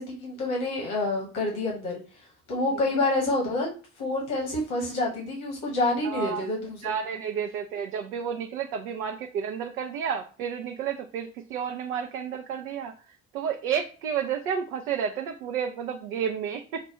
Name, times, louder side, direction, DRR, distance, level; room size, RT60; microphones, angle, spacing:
voice 1, 0.0-2.0 2.5-3.7 4.0-6.9, left 2 dB, 65° left, -2 dB, 1.4 m, -28 dB
voice 2, 6.0-6.4 6.8-12.9 13.3-16.8, right 7 dB, 80° right, 3 dB, 0.5 m, -31 dB
5.7 x 2.2 x 3.0 m, 0.36 s
figure-of-eight pair, 40°, 41 cm